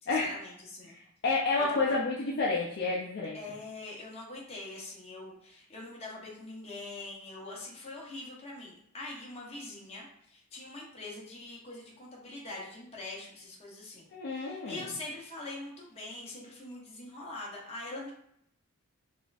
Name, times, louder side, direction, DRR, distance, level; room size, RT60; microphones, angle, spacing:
voice 1, 0.0-1.0 1.7-2.0 3.3-18.1, left 2 dB, 25° left, -3 dB, 0.8 m, -43 dB
voice 2, 0.8-3.4 14.1-14.9, left 3 dB, 50° left, -4 dB, 0.4 m, -30 dB
4.2 x 2.5 x 2.3 m, 0.71 s
head